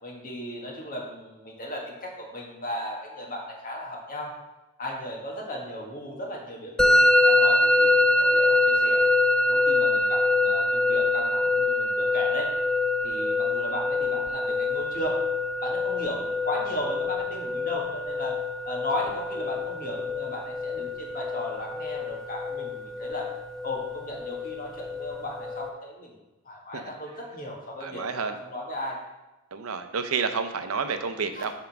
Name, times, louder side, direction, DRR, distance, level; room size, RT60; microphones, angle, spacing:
voice 1, 0.0-4.3 4.8-7.9 8.2-9.0 9.5-12.5 13.0-15.2 15.6-18.4 18.6-23.3 23.6-26.1 26.5-29.0 31.3-31.5, left 1 dB, 40° left, -2 dB, 1.6 m, -36 dB
Musical instrument, 6.8-25.7, left 2 dB, 5° left, 0.3 m, -24 dB
voice 2, 27.8-28.4 29.5-31.5, right 5 dB, 70° right, 8 dB, 0.6 m, -30 dB
6.9 x 3.8 x 5.9 m, 1.0 s
head